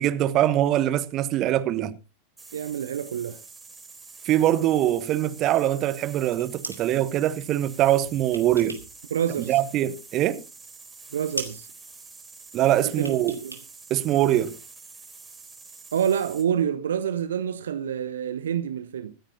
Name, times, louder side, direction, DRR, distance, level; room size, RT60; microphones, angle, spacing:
voice 1, 0.0-2.0 4.2-8.8 9.5-10.4 12.5-13.3 13.9-14.6, right 13 dB, 35° right, 1.1 m, -23 dB
sound 1, 2.4-16.5, right 4 dB, 10° right, 3.6 m, -46 dB
voice 2, 2.5-3.4 9.1-9.6 11.1-11.7 13.0-13.6 15.9-19.1, right 8 dB, 65° right, 0.9 m, -27 dB
sound 2, 6.3-6.9 7.9-9.0 9.3-10.2 10.5-10.6 10.9-11.1 11.3-11.6 12.9-13.7 13.9-14.0, right 2 dB, 85° right, 2.4 m, -38 dB
25.5 x 9.2 x 2.8 m
figure-of-eight pair, 90°, 0 cm